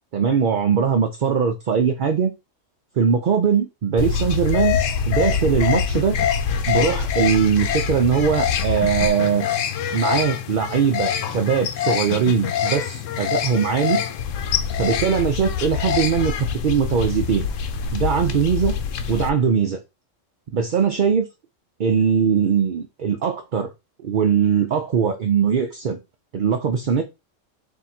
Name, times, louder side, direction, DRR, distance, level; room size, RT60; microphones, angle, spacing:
voice 1, 0.1-2.3 3.0-4.8 5.1-6.2 6.6-9.5 9.9-14.0 14.8-17.5 17.9-18.8 19.1-19.8 20.5-21.3 21.8-23.7 24.0-26.0 26.3-27.0, right 6 dB, 50° right, 0.6 m, -20 dB
sound 1, 4.0-19.3, left 8 dB, 80° left, 1.0 m, -25 dB
3.6 x 2.6 x 4.2 m
omnidirectional pair, 1.3 m